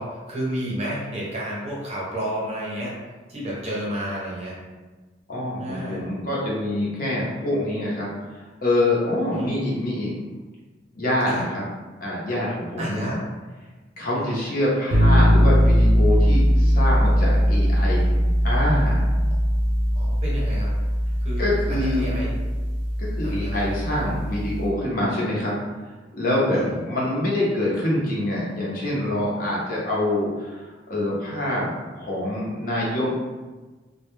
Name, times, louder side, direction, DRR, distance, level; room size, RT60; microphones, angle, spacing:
voice 1, 0.0-3.0 3.3-4.5 5.6-6.0 9.3-9.5 11.3-11.4 12.8-13.2 14.1-14.4 20.0-20.7 21.2-22.3 23.2-23.7 26.5-26.7, equal, 35° right, -5 dB, 0.7 m, -31 dB
voice 2, 5.3-8.1 8.6-10.1 10.9-11.6 12.0-13.1 14.0-18.2 18.4-19.1 21.4-22.1 23.0-25.5 26.1-31.7 32.0-33.1, left 1 dB, 50° left, -6 dB, 0.7 m, -25 dB
sound 1, 14.9-24.7, equal, 80° right, 0.4 m, -20 dB
2.2 x 2.1 x 3.0 m, 1.3 s
head